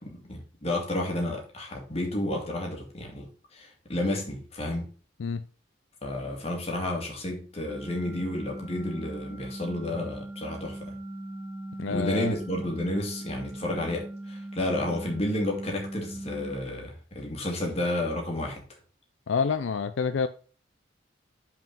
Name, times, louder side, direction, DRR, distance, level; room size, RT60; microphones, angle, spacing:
voice 1, 0.0-4.9 6.0-11.0 11.9-18.6, left 1 dB, 30° left, 2.1 m, -31 dB
sound 1, 7.7-16.5, right 1 dB, 25° right, 3.2 m, -39 dB
voice 2, 11.8-12.3 19.3-20.3, left 5 dB, 75° left, 0.4 m, -27 dB
5.9 x 4.7 x 5.3 m
head